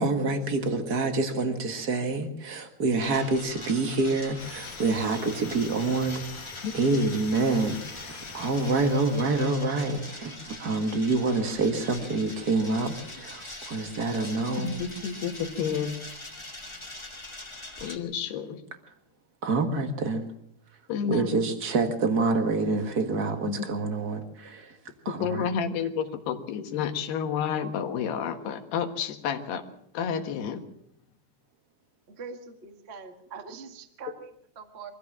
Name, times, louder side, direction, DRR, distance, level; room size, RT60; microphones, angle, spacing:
voice 1, 0.0-14.7 19.4-20.3 21.1-24.8 25.0-25.5, right 3 dB, 65° right, 6 dB, 0.9 m, -27 dB
sound 1, 3.0-18.0, left 2 dB, 15° left, 1.0 m, -43 dB
sound 2, 4.4-10.0, left 6 dB, 55° left, 3.1 m, -45 dB
voice 2, 14.6-15.9 17.8-18.6 20.9-21.4 23.5-23.7 25.1-29.6 30.0-30.6, left 7 dB, 80° left, 6 dB, 3.6 m, -30 dB
voice 3, 32.1-34.9, right 5 dB, 85° right, 6 dB, 0.5 m, -43 dB
24.0 x 15.0 x 7.4 m, 0.73 s
omnidirectional pair, 4.6 m